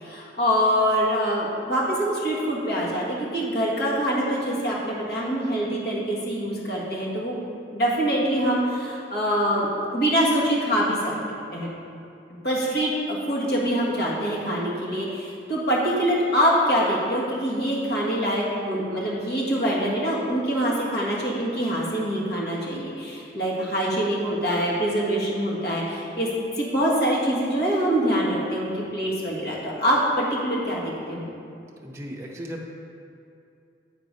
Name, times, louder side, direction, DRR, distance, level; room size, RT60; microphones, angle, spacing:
voice 1, 0.0-7.4 7.7-11.2 11.5-11.7 12.4-26.3 26.6-31.3, equal, 60° left, -5 dB, 1.7 m, -24 dB
voice 2, 31.8-32.6, equal, 15° right, -3 dB, 0.7 m, -36 dB
8.8 x 4.0 x 5.2 m, 2.6 s
head